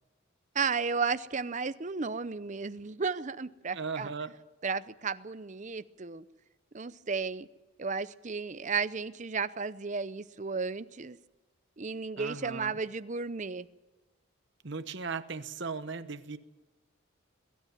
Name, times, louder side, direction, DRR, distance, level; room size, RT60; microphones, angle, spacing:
voice 1, 0.5-4.1 4.6-6.2 6.7-7.5 7.8-11.2 11.8-13.7, right 5 dB, 35° right, 0.6 m, -33 dB
voice 2, 3.7-4.3 12.2-12.7 14.6-16.4, right 4 dB, 55° right, 1.0 m, -37 dB
22.0 x 13.0 x 9.3 m
head